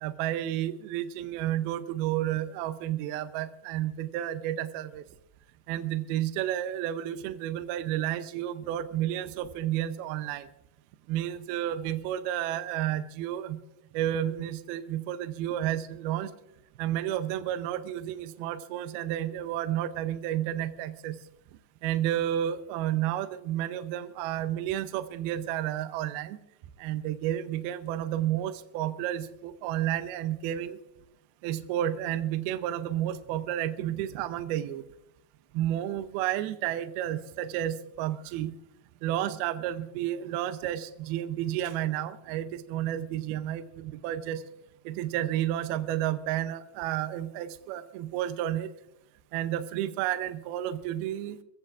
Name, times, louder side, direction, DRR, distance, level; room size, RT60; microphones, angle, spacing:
voice 1, 0.0-5.0 5.7-10.5 11.1-13.6 13.9-16.3 16.8-21.2 21.8-26.4 26.8-30.8 31.4-34.8 35.5-38.5 39.0-44.4 44.9-48.7 49.3-51.4, right 12 dB, 85° right, 11 dB, 2.2 m, -31 dB
24.5 x 15.0 x 2.4 m, 0.83 s
omnidirectional pair, 5.3 m